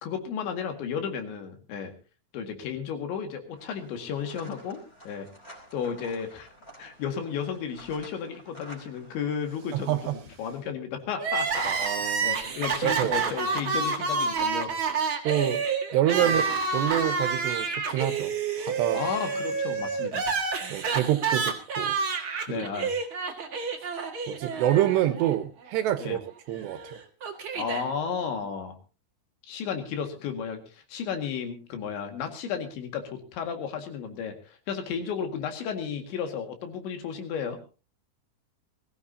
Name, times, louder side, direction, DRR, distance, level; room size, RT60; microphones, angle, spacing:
voice 1, 0.0-1.9 2.3-5.3 5.7-6.5 6.8-10.0 10.4-14.7 16.2-16.4 18.9-20.3 22.5-22.9 26.0-26.2 27.5-28.8 29.4-37.6, left 7 dB, 75° left, 4.2 m, -33 dB
sound 1, 3.6-9.8, right 1 dB, 15° left, 4.2 m, -51 dB
voice 2, 9.7-10.2 11.6-12.3 12.8-13.2 15.2-15.7 15.9-16.4 16.7-19.0 20.7-22.0 22.5-22.7 24.3-27.0, right 12 dB, 75° right, 2.9 m, -27 dB
Crying sobbing, 11.2-25.3 25.6-25.7 26.7-27.8, right 5 dB, 45° right, 1.6 m, -29 dB
21.5 x 15.5 x 2.8 m
omnidirectional pair, 5.4 m